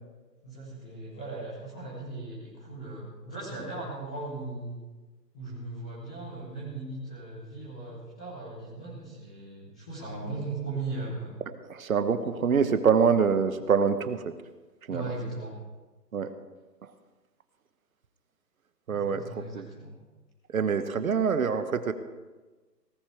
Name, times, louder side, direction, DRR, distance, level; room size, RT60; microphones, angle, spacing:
voice 1, 0.4-4.8 5.3-11.3 14.9-15.5 18.9-19.9, right 2 dB, 5° left, -10 dB, 0.7 m, -38 dB
voice 2, 11.7-14.3 14.9-15.0 16.1-16.3 18.9-19.7 20.5-21.9, right 6 dB, 55° right, 10 dB, 1.1 m, -25 dB
18.5 x 14.5 x 3.4 m, 1.2 s
hypercardioid pair, 155°, 50 cm